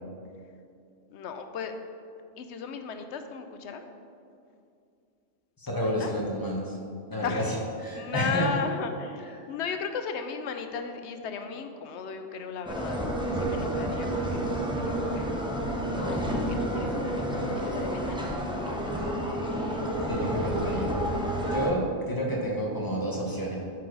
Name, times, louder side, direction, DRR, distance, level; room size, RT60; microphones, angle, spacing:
voice 1, 1.1-1.7 2.4-3.9 5.8-6.1 7.2-7.5 7.9-14.4 14.7-15.3 16.0-16.2 16.5-17.3 17.6-19.0 19.4-19.6, left 6 dB, 65° left, 7 dB, 0.8 m, -36 dB
voice 2, 5.6-6.8 7.1-8.5 20.1-21.0 21.5-23.6, equal, 20° left, -2 dB, 1.0 m, -30 dB
sound 1, 12.7-21.7, right 1 dB, 5° right, 0.6 m, -30 dB
9.0 x 4.7 x 4.7 m, 2.5 s
omnidirectional pair, 1.3 m